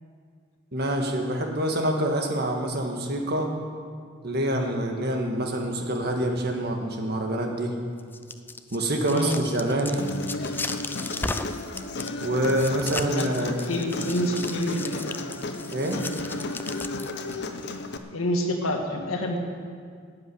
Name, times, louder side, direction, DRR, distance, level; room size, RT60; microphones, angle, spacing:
voice 1, 0.7-3.5 4.2-7.8 8.7-10.1 12.2-13.6 15.7-16.0, right 1 dB, 50° right, 2 dB, 1.8 m, -26 dB
sound 1, 8.0-17.4, left 3 dB, 10° left, 0.3 m, -36 dB
voice 2, 9.0-9.4 13.1-15.3 18.1-19.4, left 1 dB, 90° left, 2 dB, 1.8 m, -28 dB
Human voice, 10.0-18.0, left 2 dB, 55° left, 0.8 m, -34 dB
13.0 x 7.7 x 9.4 m, 2.1 s
head